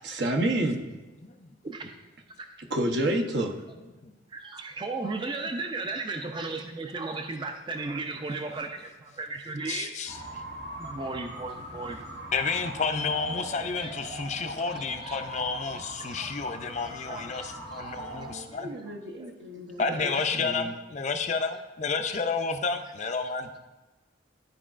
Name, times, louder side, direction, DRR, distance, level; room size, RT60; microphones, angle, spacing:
voice 1, 0.0-0.8 2.6-3.6 17.9-20.7, right 1 dB, 65° right, 2 dB, 0.9 m, -30 dB
voice 2, 1.6-1.9 2.4-2.5 4.3-10.0 10.8-12.0 13.8-13.9 14.6-15.2 16.1-16.3 16.8-19.3 19.8-20.3, right 3 dB, 25° right, 5 dB, 0.4 m, -36 dB
voice 3, 9.7-10.2 12.3-18.7 19.8-23.6, left 4 dB, 40° left, 7 dB, 0.4 m, -30 dB
sound 1, 10.1-18.3, right 1 dB, 90° right, 1.4 m, -41 dB
12.0 x 4.7 x 2.5 m, 1.2 s
head